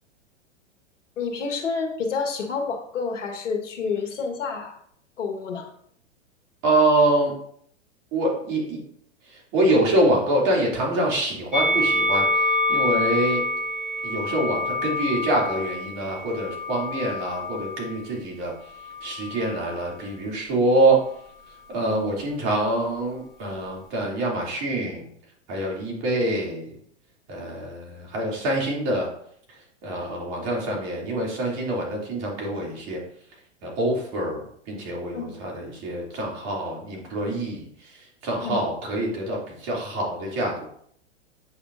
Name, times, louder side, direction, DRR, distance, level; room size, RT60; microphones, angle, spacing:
voice 1, 1.2-4.8 5.2-5.7 12.9-13.0 21.8-22.0 35.1-35.3 38.4-38.6, left 5 dB, 80° left, 3 dB, 1.6 m, -29 dB
voice 2, 6.6-7.3 8.1-8.8 9.3-13.4 14.0-18.5 19.0-21.0 21.7-25.0 25.5-26.7 27.3-29.1 29.8-33.0 33.6-37.9 38.2-40.7, right 1 dB, 45° right, -2 dB, 2.8 m, -25 dB
Musical instrument, 11.5-17.9 18.8-19.8, left 1 dB, ahead, 2.9 m, -26 dB
8.4 x 5.1 x 2.6 m, 0.65 s
hypercardioid pair, 110°, 36 cm